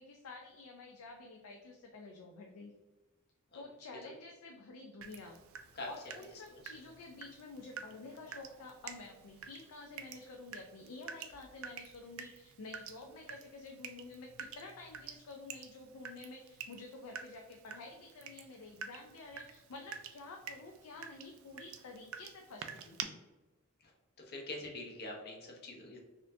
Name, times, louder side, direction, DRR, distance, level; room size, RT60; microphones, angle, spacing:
voice 1, 0.0-2.7 3.5-5.4 5.9-23.2, left 3 dB, 80° left, 2 dB, 0.4 m, -50 dB
Water tap faucet / Drip, 5.0-23.0, right 7 dB, 65° right, 0.4 m, -49 dB
voice 2, 5.7-6.1 6.5-6.6 23.8-23.9 24.2-26.0, left 2 dB, 45° left, 0 dB, 0.8 m, -45 dB
4.2 x 2.6 x 2.6 m, 1.1 s
head